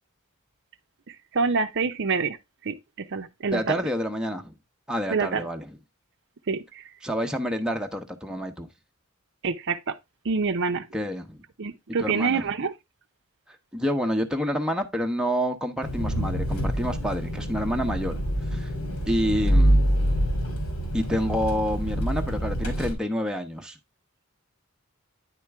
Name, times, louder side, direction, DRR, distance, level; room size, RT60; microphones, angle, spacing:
voice 1, 1.1-2.4 2.6-3.8 5.1-5.5 6.5-6.9 9.4-10.0 10.2-10.9 11.6-12.7, right 4 dB, 55° right, 0.6 m, -27 dB
voice 2, 3.5-4.5 4.9-5.6 7.0-8.7 10.9-11.4 12.0-12.5 13.5-18.2 18.5-18.7 19.1-19.9 20.9-23.8, equal, 5° right, 0.8 m, -28 dB
Engine, 15.8-22.9, equal, 85° left, 2.8 m, -25 dB
9.7 x 4.4 x 3.4 m
head